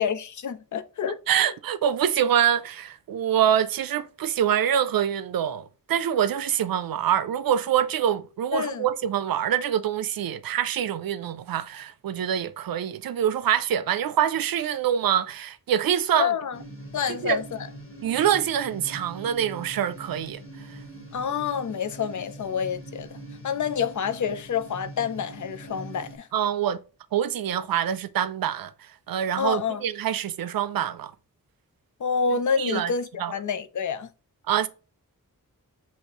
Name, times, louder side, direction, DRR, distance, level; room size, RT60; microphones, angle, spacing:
voice 1, 0.0-1.2 8.5-8.9 16.1-16.6 16.9-17.6 21.1-23.1 23.4-26.3 29.4-29.8 32.0-34.1, left 6 dB, 60° left, 0.5 m, -28 dB
voice 2, 1.3-16.3 17.2-17.4 18.0-20.4 20.7-20.8 26.3-26.8 27.1-31.1 32.6-32.9 33.2-33.3 34.5-34.7, right 9 dB, 90° right, 0.5 m, -25 dB
sound 1, 16.5-26.2, right 1 dB, 40° left, 1.2 m, -43 dB
6.3 x 2.9 x 2.9 m
wide cardioid pair, 80°, 34 cm